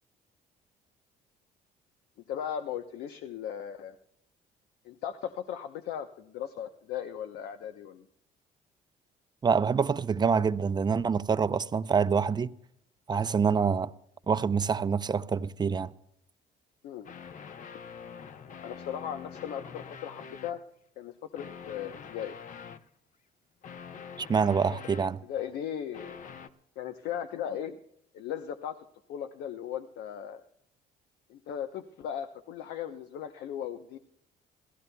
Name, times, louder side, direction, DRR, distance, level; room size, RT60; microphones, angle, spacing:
voice 1, 2.3-4.0 4.8-8.1 16.8-17.1 18.6-20.6 21.0-22.4 25.2-26.2 26.8-27.8 28.1-30.4 31.3-34.0, left 9 dB, 80° left, 0.9 m, -37 dB
voice 2, 9.4-12.5 13.1-13.9 14.3-15.9 24.2-25.2, right 6 dB, 25° right, 0.6 m, -26 dB
sound 1, 17.0-20.6 21.4-22.9 23.6-25.4 25.9-26.5, left 6 dB, 50° left, 0.9 m, -45 dB
26.0 x 17.0 x 2.3 m
cardioid pair, 110°, 17 cm